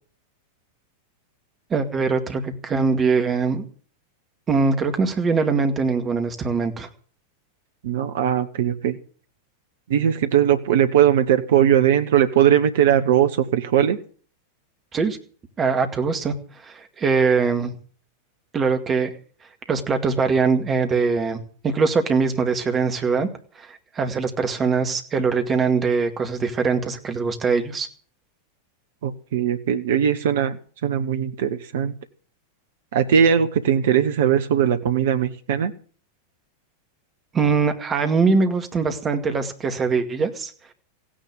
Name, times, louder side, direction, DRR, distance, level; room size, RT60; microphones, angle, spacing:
voice 1, 1.7-3.7 4.5-6.9 14.9-15.2 15.6-16.3 16.6-17.7 18.5-19.1 19.7-21.4 21.6-23.3 23.6-27.9 37.3-40.5, right 4 dB, 20° right, 6 dB, 2.2 m, -22 dB
voice 2, 7.8-9.0 9.9-14.0 29.0-30.6 30.8-31.9 32.9-35.7, right 9 dB, 55° right, 10 dB, 1.0 m, -19 dB
16.0 x 10.0 x 7.7 m, 0.43 s
figure-of-eight pair, 90°, 0 cm